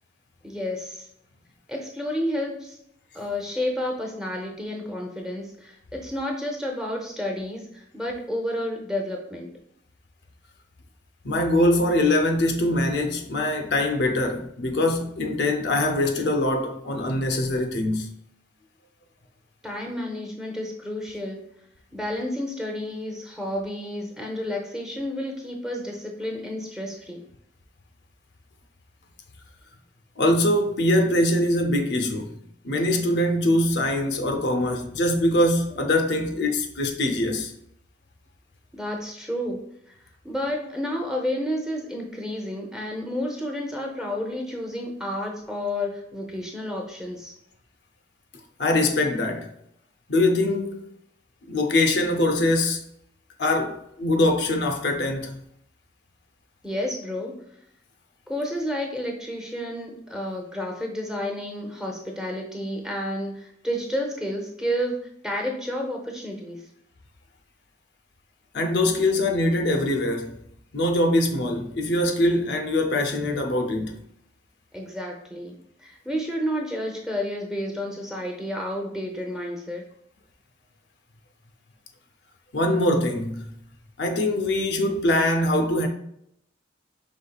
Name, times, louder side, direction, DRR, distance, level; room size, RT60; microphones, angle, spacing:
voice 1, 0.4-1.1 1.7-2.8 3.1-9.5 19.6-21.4 21.9-27.2 38.7-39.6 40.2-47.3 56.6-57.4 58.3-65.0 65.2-66.6 74.7-75.5 75.8-79.8, left 1 dB, 5° right, 0.7 m, -30 dB
voice 2, 11.2-18.1 30.2-32.3 32.6-37.5 48.6-49.5 50.1-50.9 51.4-52.8 53.4-55.4 68.5-70.4 70.7-73.9 82.5-83.5 84.0-85.9, left 1 dB, 65° left, 0.6 m, -23 dB
5.3 x 3.7 x 2.3 m
head